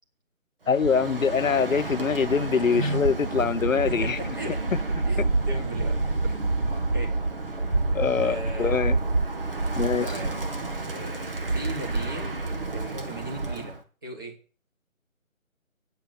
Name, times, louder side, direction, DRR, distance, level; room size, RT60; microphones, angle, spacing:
voice 1, 0.7-4.2 5.2-5.3 7.9-9.0 9.7-10.1, left 6 dB, 70° left, 0.7 m, -24 dB
Bird, 0.7-13.8, right 2 dB, 40° right, 1.5 m, -28 dB
voice 2, 2.7-3.1 3.8-4.6 5.1-6.6 6.9-7.1 8.2-8.8 10.0-10.4 10.9-12.4 12.7-14.4, right 1 dB, 15° right, 1.3 m, -36 dB
9.3 x 5.8 x 7.9 m
figure-of-eight pair, 160°, 42 cm